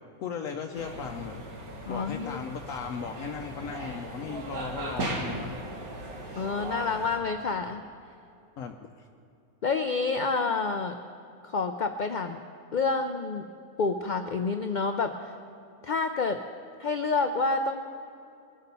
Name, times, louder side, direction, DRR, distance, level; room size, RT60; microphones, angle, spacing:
voice 1, 0.2-1.4 1.9-5.5 8.6-8.9, left 6 dB, 70° left, 4 dB, 1.0 m, -36 dB
sound 1, 0.7-7.2, right 2 dB, 85° right, 2.1 m, -38 dB
voice 2, 1.9-2.4 6.3-7.8 9.6-11.0 11.4-12.4 12.7-13.5 13.8-15.3 15.8-16.4 16.8-17.8, left 4 dB, 90° left, 7 dB, 0.4 m, -28 dB
21.5 x 8.3 x 5.4 m, 2.6 s
omnidirectional pair, 1.5 m